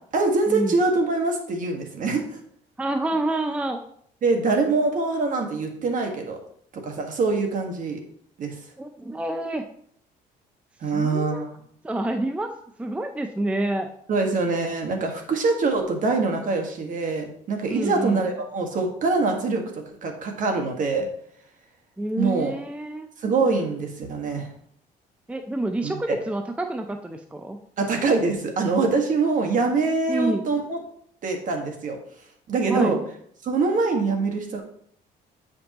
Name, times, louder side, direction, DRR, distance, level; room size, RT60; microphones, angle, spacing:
voice 1, 0.1-2.4 4.2-6.4 6.7-8.0 8.4-8.6 10.8-11.6 14.1-21.1 22.2-22.6 23.2-24.5 25.8-26.2 27.8-30.8 31.2-32.0 32.5-33.0 33.4-34.6, right 3 dB, 50° right, 3 dB, 1.5 m, -24 dB
voice 2, 2.8-3.8 8.8-9.6 10.9-11.4 11.8-12.5 12.8-13.9 17.7-18.2 22.0-23.1 25.3-27.6 30.1-30.5 32.7-33.0, right 1 dB, 5° right, 6 dB, 0.5 m, -27 dB
8.6 x 5.3 x 2.9 m, 0.65 s
cardioid pair, 110°, 17 cm